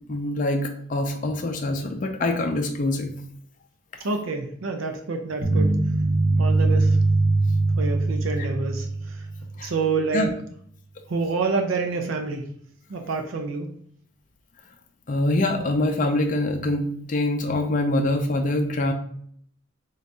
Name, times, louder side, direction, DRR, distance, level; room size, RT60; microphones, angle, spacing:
voice 1, 0.1-3.1 9.6-9.7 10.1-10.3 15.1-16.8 17.1-18.9, left 2 dB, 40° left, 4 dB, 0.4 m, -24 dB
voice 2, 4.0-5.7 6.4-7.0 7.8-9.2 9.6-10.3 11.1-12.5 12.9-13.7, right 4 dB, 75° right, 4 dB, 0.5 m, -27 dB
sound 1, 5.4-9.6, right 2 dB, 40° right, 0.8 m, -22 dB
3.9 x 2.6 x 3.3 m, 0.64 s
head